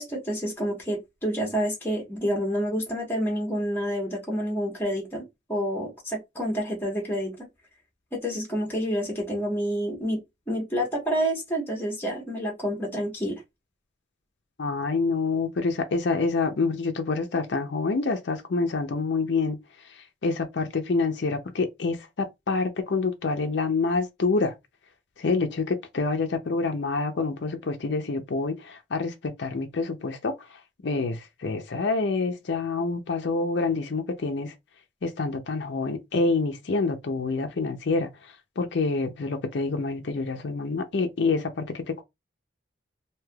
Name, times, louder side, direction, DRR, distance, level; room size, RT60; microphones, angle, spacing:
voice 1, 0.0-7.4 8.1-10.2 10.5-13.4, equal, 10° left, 1.1 m, -28 dB
voice 2, 14.6-19.6 20.2-24.5 25.2-30.3 30.8-34.5 35.0-38.1 38.6-42.0, left 3 dB, 65° left, 0.5 m, -27 dB
3.2 x 2.7 x 2.2 m
head